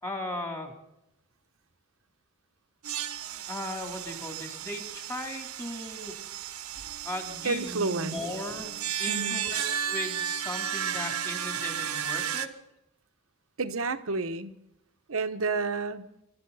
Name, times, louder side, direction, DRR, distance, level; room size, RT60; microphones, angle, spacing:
voice 1, 0.0-0.8 3.5-6.6 7.0-12.5, left 1 dB, 15° left, 2 dB, 3.4 m, -37 dB
sound 1, 2.8-12.5, right 9 dB, 90° right, 1.3 m, -34 dB
voice 2, 7.4-8.2 9.1-9.4 13.6-14.5 15.1-16.1, right 3 dB, 65° right, 9 dB, 1.0 m, -30 dB
26.0 x 13.0 x 4.1 m, 0.85 s
head